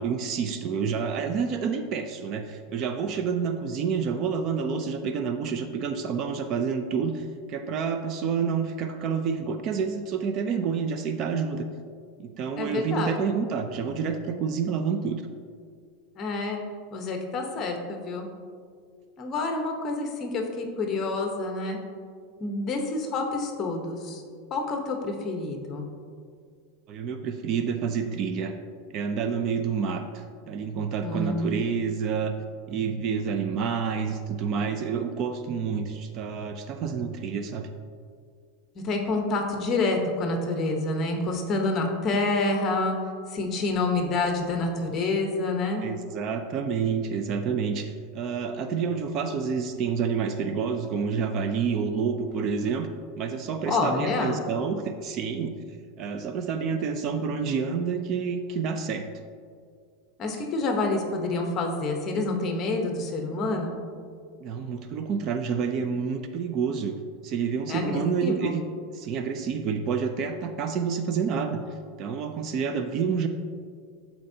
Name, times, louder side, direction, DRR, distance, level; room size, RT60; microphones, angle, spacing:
voice 1, 0.0-11.7 12.2-15.2 26.9-28.5 28.9-32.3 32.7-37.7 45.8-52.9 53.2-55.5 56.0-59.1 64.4-67.0 67.2-68.6 68.9-71.6 72.0-73.3, right 6 dB, 35° right, 8 dB, 0.4 m, -28 dB
voice 2, 12.6-13.2 16.2-16.6 16.9-18.3 19.2-21.8 22.4-24.2 24.5-25.9 31.0-31.5 38.7-43.0 43.3-45.9 53.7-54.4 60.2-63.8 67.7-68.6, left 3 dB, 30° left, 3 dB, 1.0 m, -28 dB
13.0 x 4.4 x 2.8 m, 2.1 s
supercardioid pair, 155°, 0 cm